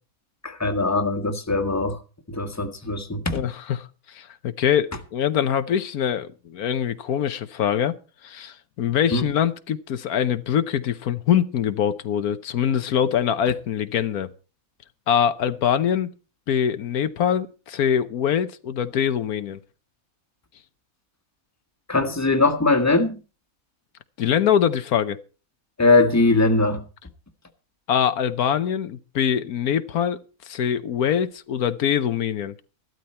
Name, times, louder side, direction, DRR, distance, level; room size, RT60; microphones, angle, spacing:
voice 1, 0.4-2.0 2.3-3.4 9.1-9.2 21.9-23.2 25.8-26.8, left 3 dB, 10° left, 1.4 m, -21 dB
voice 2, 3.3-8.0 8.2-14.3 15.1-16.1 16.5-19.6 24.2-25.2 27.9-32.5, left 9 dB, 80° left, 1.4 m, -23 dB
14.5 x 12.5 x 4.3 m
omnidirectional pair, 1.5 m